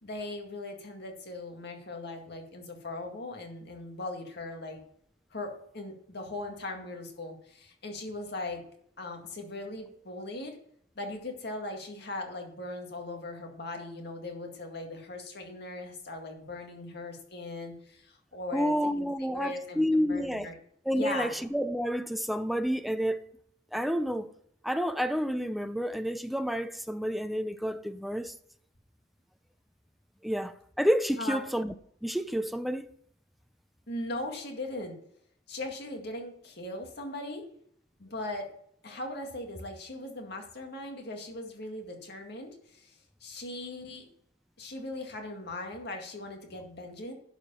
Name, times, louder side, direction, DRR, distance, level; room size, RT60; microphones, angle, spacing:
voice 1, 0.0-4.8 5.3-8.6 9.0-10.6 11.0-20.6 20.9-21.3 31.2-31.4 33.9-35.0 35.5-37.4 38.0-38.5 38.8-43.0 43.2-44.1 44.6-47.1, left 2 dB, 60° left, 2.1 m, -39 dB
voice 2, 18.5-20.5 20.9-23.3 23.7-24.3 24.6-28.3 30.2-31.7 32.0-32.8, equal, ahead, 0.5 m, -29 dB
11.5 x 5.0 x 5.6 m
head